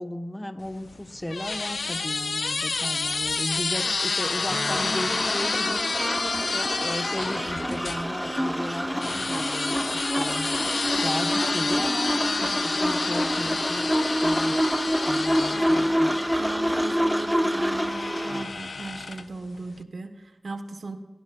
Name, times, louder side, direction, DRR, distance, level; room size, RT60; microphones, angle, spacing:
voice 1, 0.0-5.9 6.5-10.5 11.0-14.7 15.0-16.1, left 1 dB, 20° left, 8 dB, 1.1 m, -35 dB
sound 1, 0.6-8.0 9.0-16.9 17.8-19.4, left 4 dB, 75° left, 0.4 m, -30 dB
sound 2, 4.5-18.4, equal, ahead, 1.2 m, -27 dB
voice 2, 15.5-21.0, right 3 dB, 75° right, 8 dB, 1.1 m, -38 dB
18.0 x 10.5 x 2.3 m, 1.2 s
wide cardioid pair, 50°, 0 cm